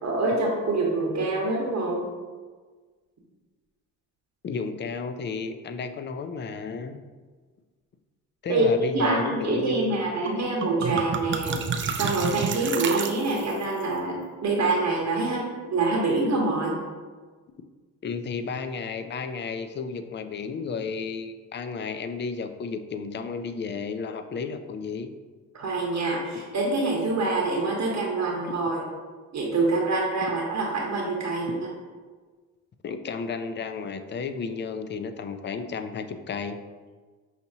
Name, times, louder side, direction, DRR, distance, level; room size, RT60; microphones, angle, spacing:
voice 1, 0.0-2.1 8.5-8.7 8.9-16.8 25.5-28.8 29.3-31.7, right 3 dB, 50° right, -2 dB, 1.0 m, -26 dB
voice 2, 4.4-7.0 8.4-10.0 18.0-25.1 32.8-36.6, left 5 dB, 30° left, 8 dB, 0.4 m, -32 dB
sound 1, 10.3-10.4 10.6-13.6, right 6 dB, 35° right, 0.4 m, -30 dB
5.7 x 2.7 x 2.7 m, 1.4 s
supercardioid pair, 70°, 35 cm